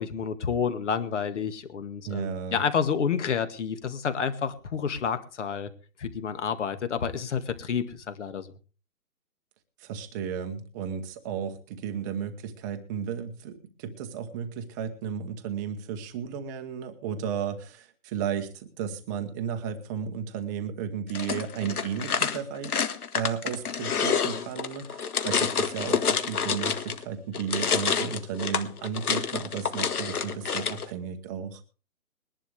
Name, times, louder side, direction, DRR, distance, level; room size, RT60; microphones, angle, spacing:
voice 1, 0.0-5.7 6.0-8.5, left 7 dB, 50° left, 10 dB, 2.1 m, -29 dB
voice 2, 2.0-2.6 9.8-22.9 23.1-31.6, right 7 dB, 15° right, 6 dB, 1.0 m, -34 dB
sound 1, 21.1-27.0 27.3-30.9, left 6 dB, 80° left, 1.7 m, -28 dB
21.5 x 11.0 x 3.4 m, 0.34 s
hypercardioid pair, 160°, 44 cm